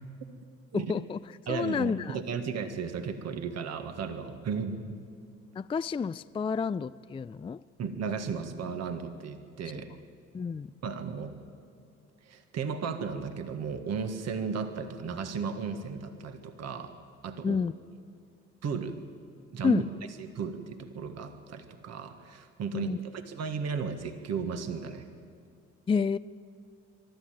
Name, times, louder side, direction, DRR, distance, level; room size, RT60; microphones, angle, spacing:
voice 1, 0.7-1.2 1.5-2.2 5.6-7.6 10.3-10.7 17.4-17.7 19.6-19.8 22.7-23.0 25.9-26.2, left 5 dB, 15° left, 0.4 m, -29 dB
voice 2, 1.5-5.0 7.8-9.9 10.8-11.3 12.2-16.9 17.2-17.6 18.6-19.0 19.5-19.8 20.2-25.1, right 5 dB, 55° right, 1.7 m, -35 dB
23.0 x 13.0 x 9.1 m
hypercardioid pair, 55°, 31 cm